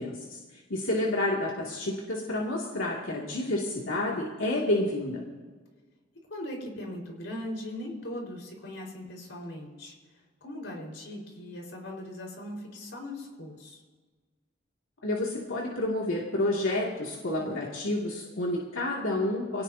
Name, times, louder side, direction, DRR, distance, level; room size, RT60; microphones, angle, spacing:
voice 1, 0.0-5.2 15.0-19.6, left 1 dB, 90° left, -3 dB, 2.4 m, -29 dB
voice 2, 6.3-9.9 10.4-13.8, left 1 dB, 65° left, 0 dB, 4.7 m, -39 dB
24.0 x 18.0 x 2.8 m, 1.4 s
head